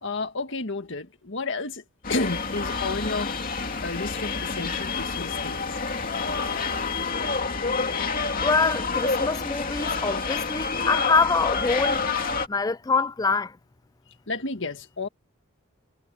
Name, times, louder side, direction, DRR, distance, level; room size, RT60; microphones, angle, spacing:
voice 1, 0.0-1.8 2.1-3.3 3.8-5.6 14.3-15.1, left 3 dB, 60° left, 1.7 m, -31 dB
sound 1, 2.0-12.5, left 4 dB, 40° left, 2.8 m, -28 dB
sound 2, 2.1-7.1, left 5 dB, 90° left, 7.8 m, -52 dB
voice 2, 8.4-12.0 12.5-13.6, left 4 dB, 15° left, 0.4 m, -24 dB
head